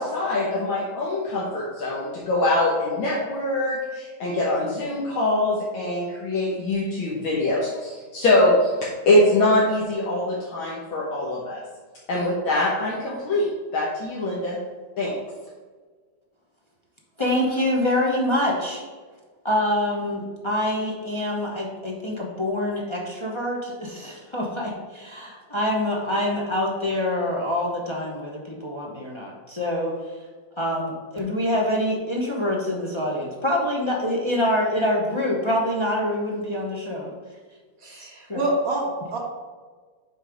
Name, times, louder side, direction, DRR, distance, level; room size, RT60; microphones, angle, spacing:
voice 1, 0.0-11.6 12.1-14.6 15.0-15.1, left 1 dB, 70° left, -5 dB, 1.9 m, -23 dB
voice 2, 17.2-18.8 19.4-30.0 30.6-37.2 38.0-38.4, left 1 dB, 40° left, -3 dB, 0.4 m, -25 dB
voice 3, 37.8-39.2, right 1 dB, 45° right, -2 dB, 1.8 m, -27 dB
7.2 x 4.0 x 5.2 m, 1.5 s
omnidirectional pair, 2.3 m